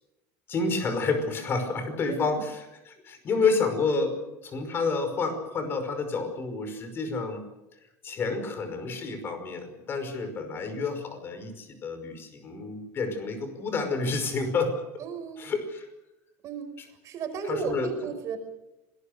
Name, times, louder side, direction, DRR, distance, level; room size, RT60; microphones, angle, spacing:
voice 1, 0.5-4.2 4.4-7.4 8.0-14.8 15.4-15.9 16.8-16.9 17.5-17.9, left 4 dB, 30° left, 8 dB, 5.4 m, -29 dB
voice 2, 2.0-2.4 15.0-15.4 16.4-18.4, right 6 dB, 40° right, 7 dB, 5.1 m, -35 dB
26.5 x 20.0 x 6.7 m, 1.0 s
supercardioid pair, 145°, 8 cm